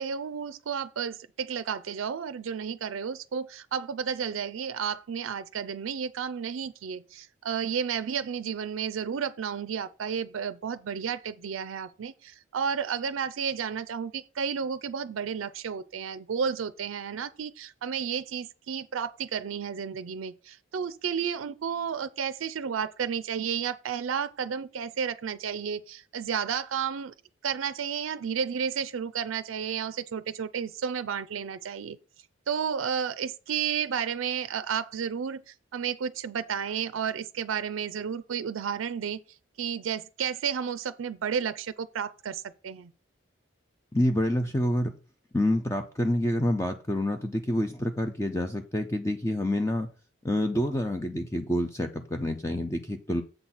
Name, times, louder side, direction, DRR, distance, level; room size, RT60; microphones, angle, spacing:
voice 1, 0.0-27.1 27.4-32.0 32.5-39.2 39.6-42.9, right 7 dB, 90° right, 0.4 m, -32 dB
voice 2, 43.9-44.9 45.3-49.9 50.2-53.2, left 1 dB, 15° left, 0.5 m, -27 dB
7.8 x 4.0 x 5.9 m
head